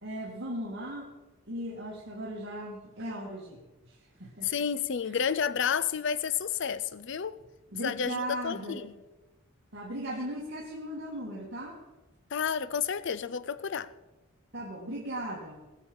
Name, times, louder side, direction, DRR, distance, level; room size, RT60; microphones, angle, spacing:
voice 1, 0.0-1.1 1.5-4.5 5.1-5.2 7.7-8.8 9.7-11.8 14.5-15.6, right 1 dB, 55° right, 1.8 m, -37 dB
voice 2, 4.4-7.4 7.8-8.9 12.3-13.9, left 7 dB, 60° left, 0.5 m, -30 dB
19.0 x 7.2 x 5.3 m
head